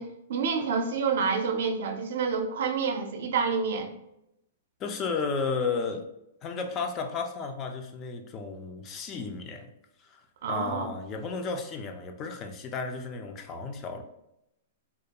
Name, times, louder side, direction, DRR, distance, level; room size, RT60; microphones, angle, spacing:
voice 1, 0.0-3.9 10.4-10.9, right 5 dB, 70° right, 5 dB, 0.4 m, -28 dB
voice 2, 4.8-6.1 6.4-9.7 10.0-10.2 10.5-14.0, left 4 dB, 30° left, 5 dB, 0.3 m, -33 dB
2.3 x 2.2 x 2.8 m, 0.83 s
hypercardioid pair, 135°, 0 cm